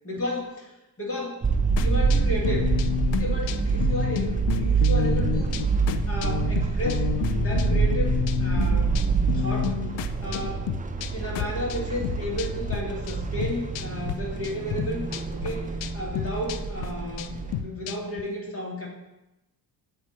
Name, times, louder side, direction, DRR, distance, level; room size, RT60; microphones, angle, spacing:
voice 1, 0.0-0.7 1.0-1.4 1.7-2.7 3.1-5.6 6.1-7.1 7.3-9.0 9.3-9.8 10.2-10.7 11.1-18.9, left 1 dB, 30° left, -2 dB, 2.1 m, -33 dB
sound 1, 1.4-17.6, right 5 dB, 15° right, 0.5 m, -26 dB
sound 2, 1.8-12.8 13.1-14.1 14.4-18.2, left 12 dB, 65° left, 0.5 m, -31 dB
7.5 x 2.9 x 4.5 m, 0.93 s
supercardioid pair, 55°, 48 cm